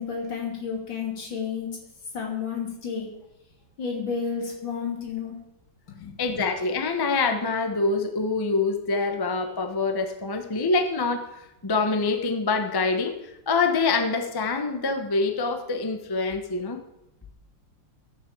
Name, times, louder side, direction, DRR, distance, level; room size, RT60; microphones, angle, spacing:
voice 1, 0.0-1.7 2.1-3.1 3.8-5.3 5.9-6.4, left 6 dB, 75° left, -1 dB, 3.4 m, -31 dB
voice 2, 6.2-16.8, left 3 dB, 20° left, 5 dB, 0.6 m, -25 dB
13.0 x 6.5 x 7.1 m, 0.90 s
omnidirectional pair, 2.1 m